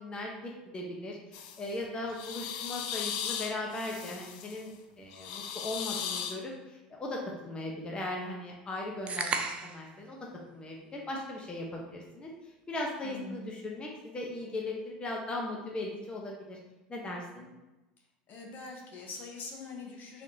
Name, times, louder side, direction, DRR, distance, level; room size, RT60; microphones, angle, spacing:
voice 1, 0.0-16.6 16.9-17.5, left 2 dB, 25° left, -1 dB, 1.0 m, -38 dB
sound 1, 1.3-1.7 2.1-4.6 5.1-6.4, left 8 dB, 65° left, 0.5 m, -37 dB
sound 2, 9.1-9.9, right 4 dB, 30° right, 0.5 m, -33 dB
voice 2, 13.0-13.5 18.3-20.2, left 3 dB, 45° left, 0 dB, 1.1 m, -43 dB
5.0 x 3.6 x 2.8 m, 1.0 s
hypercardioid pair, 75°, 4 cm